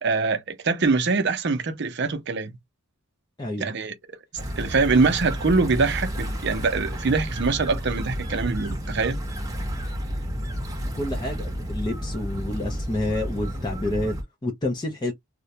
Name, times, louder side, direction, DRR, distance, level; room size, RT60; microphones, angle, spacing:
voice 1, 0.0-2.5 3.6-3.9 4.6-9.2, right 4 dB, 50° right, 0.6 m, -23 dB
voice 2, 3.4-3.7 10.9-14.1 14.4-15.1, left 1 dB, 20° left, 0.5 m, -28 dB
sound 1, 4.4-14.2, equal, 15° right, 0.8 m, -31 dB
2.3 x 2.1 x 2.7 m
head